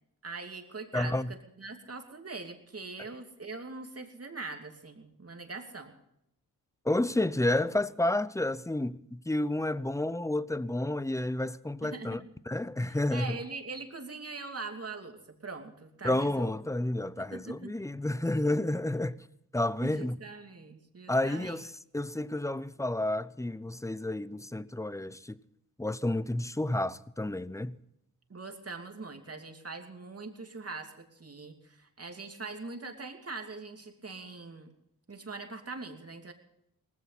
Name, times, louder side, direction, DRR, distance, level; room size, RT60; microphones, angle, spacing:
voice 1, 0.2-5.9 11.8-12.3 12.8-16.6 17.2-17.8 19.8-21.6 28.3-34.7 35.1-36.3, right 3 dB, 40° right, 2.7 m, -42 dB
voice 2, 0.9-1.3 6.8-12.2 12.5-13.4 16.0-19.2 19.5-20.2 21.1-25.4 25.8-27.8, left 1 dB, 10° left, 0.6 m, -30 dB
19.0 x 15.5 x 4.1 m
cardioid pair, 65°, 36 cm